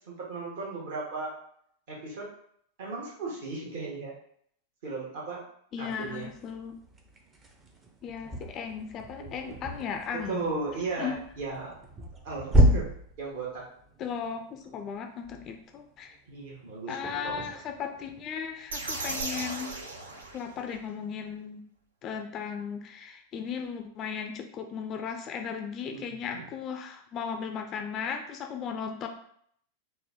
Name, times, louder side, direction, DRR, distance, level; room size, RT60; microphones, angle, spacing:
voice 1, 0.1-1.3 1.9-2.3 2.8-4.1 4.8-5.4 5.8-6.3 9.2-9.5 10.1-11.7 12.2-12.9 13.2-13.6 16.3-17.3 25.9-26.5, right 3 dB, 50° right, -4 dB, 1.1 m, -36 dB
voice 2, 5.7-6.8 8.0-10.5 11.0-11.2 14.0-16.2 16.9-19.8 20.3-21.6 22.0-29.1, left 7 dB, 30° left, 5 dB, 0.4 m, -36 dB
sound 1, 5.9-20.8, right 1 dB, 20° right, 0.6 m, -33 dB
sound 2, 18.7-20.8, right 3 dB, 70° right, 0.6 m, -36 dB
4.4 x 2.1 x 3.5 m, 0.65 s
figure-of-eight pair, 90°, 0 cm